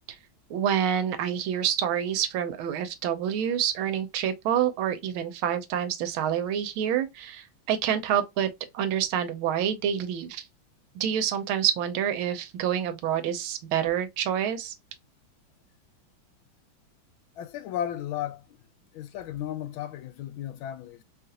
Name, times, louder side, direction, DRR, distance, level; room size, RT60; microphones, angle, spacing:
voice 1, 0.5-8.5 8.7-10.4 10.9-14.7, right 9 dB, 80° right, 1.5 m, -27 dB
voice 2, 17.4-18.6 18.9-21.0, left 11 dB, 80° left, 1.3 m, -34 dB
3.4 x 2.4 x 2.7 m
omnidirectional pair, 2.2 m